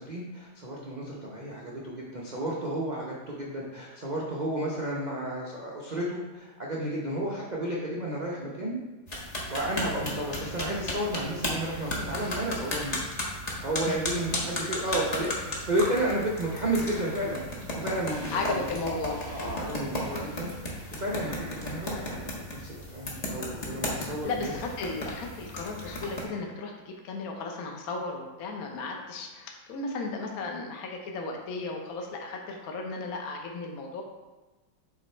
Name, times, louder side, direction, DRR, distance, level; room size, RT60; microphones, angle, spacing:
voice 1, 0.0-8.8 9.5-13.0 13.6-17.4 17.8-18.8 19.3-24.5, right 1 dB, 85° right, -5 dB, 0.4 m, -32 dB
sound 1, 9.1-26.2, left 1 dB, 30° left, 0.8 m, -35 dB
voice 2, 18.3-19.2 24.2-34.0, left 3 dB, 60° left, 2 dB, 1.0 m, -35 dB
7.3 x 3.4 x 4.4 m, 1.2 s
omnidirectional pair, 2.2 m